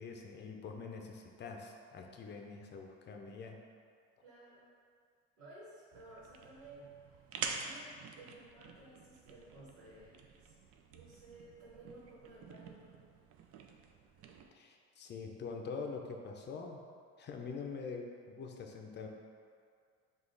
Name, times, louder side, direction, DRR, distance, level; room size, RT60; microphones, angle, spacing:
voice 1, 0.0-3.6 14.5-16.8 17.2-19.1, left 4 dB, 35° left, 2 dB, 0.5 m, -45 dB
voice 2, 4.2-4.7 5.4-7.3 7.6-10.5 10.9-13.1, right 2 dB, 85° right, -8 dB, 1.3 m, -56 dB
sound 1, 5.9-14.5, right 5 dB, 50° right, 0.4 m, -48 dB
5.0 x 2.5 x 3.8 m, 2.2 s
supercardioid pair, 100°, 30 cm